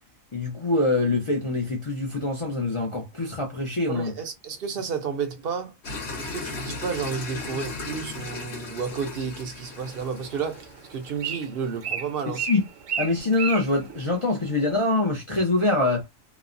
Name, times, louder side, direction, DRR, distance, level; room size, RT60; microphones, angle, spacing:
voice 1, 0.3-4.1 12.3-12.6 13.0-16.1, left 2 dB, 40° left, 0.5 m, -24 dB
voice 2, 3.9-5.7 6.2-12.5, right 6 dB, 55° right, 0.7 m, -31 dB
sound 1, 5.8-11.2, left 3 dB, 60° left, 1.2 m, -36 dB
Bird, 9.7-14.8, right 6 dB, 75° right, 1.2 m, -35 dB
3.0 x 2.0 x 2.5 m
omnidirectional pair, 1.4 m